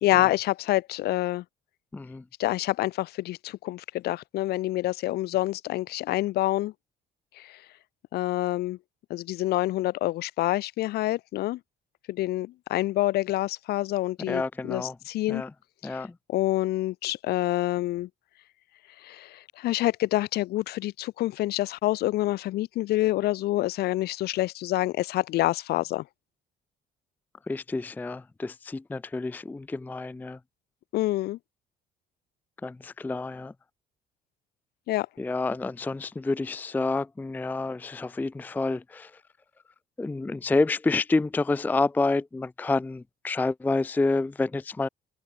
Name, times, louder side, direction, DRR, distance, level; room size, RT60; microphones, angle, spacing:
voice 1, 0.0-1.4 2.4-6.7 7.4-7.6 8.1-8.8 9.1-11.6 12.1-14.4 14.7-15.4 15.8-16.0 16.3-18.1 19.0-26.0 30.9-31.4 34.9-35.1, left 16 dB, 70° left, 0.6 m, -27 dB
voice 2, 1.9-2.2 14.3-15.0 15.3-15.5 15.8-16.1 27.5-30.4 32.6-33.5 35.2-39.1 40.0-44.9, left 3 dB, 10° left, 0.4 m, -28 dB
cardioid pair, 110°, 17 cm